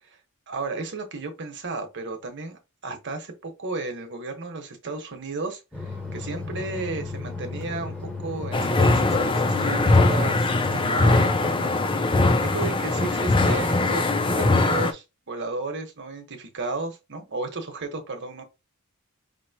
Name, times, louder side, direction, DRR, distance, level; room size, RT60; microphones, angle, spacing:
voice 1, 0.5-18.4, right 3 dB, 55° right, 1.2 m, -34 dB
sound 1, 5.7-11.3, left 3 dB, 5° left, 1.1 m, -34 dB
sound 2, 8.5-14.9, left 2 dB, 25° left, 0.5 m, -21 dB
5.4 x 2.9 x 2.8 m
head